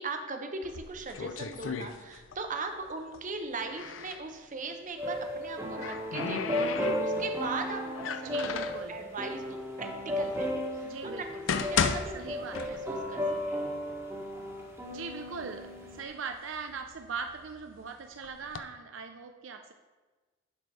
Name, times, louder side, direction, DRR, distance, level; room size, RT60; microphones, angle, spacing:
voice 1, 0.0-8.5 8.9-13.2 13.5-13.6, right 3 dB, 40° right, 5 dB, 0.8 m, -39 dB
sound 1, 0.6-2.5 2.8-4.2 5.3-7.4 7.9-8.9 9.7-9.8 10.4-10.5 11.1-13.1 13.5-13.6 14.3-14.4 14.7-15.4 15.9-17.6 18.2-18.6, left 6 dB, 80° left, 0.5 m, -34 dB
sound 2, 5.0-16.0, equal, 15° right, 1.4 m, -35 dB
voice 2, 8.2-9.0 10.8-11.5 12.1-12.8 14.9-19.7, right 5 dB, 80° right, 6 dB, 0.5 m, -40 dB
11.0 x 4.4 x 4.6 m, 1.3 s
head